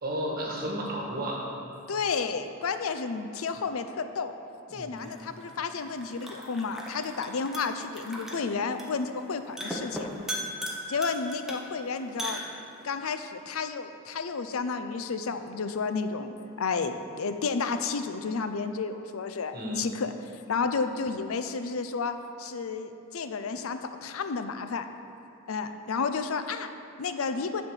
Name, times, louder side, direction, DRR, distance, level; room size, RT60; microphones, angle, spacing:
voice 1, 0.0-1.4 4.7-5.1 19.5-19.9, right 1 dB, 45° right, -1 dB, 1.4 m, -33 dB
voice 2, 1.9-4.3 4.7-10.1 10.9-12.4 12.8-20.1 20.5-24.9 25.5-27.6, left 5 dB, 80° left, 9 dB, 0.5 m, -31 dB
sound 1, 5.0-13.0, equal, ahead, 0.9 m, -39 dB
9.5 x 4.4 x 7.3 m, 2.7 s
head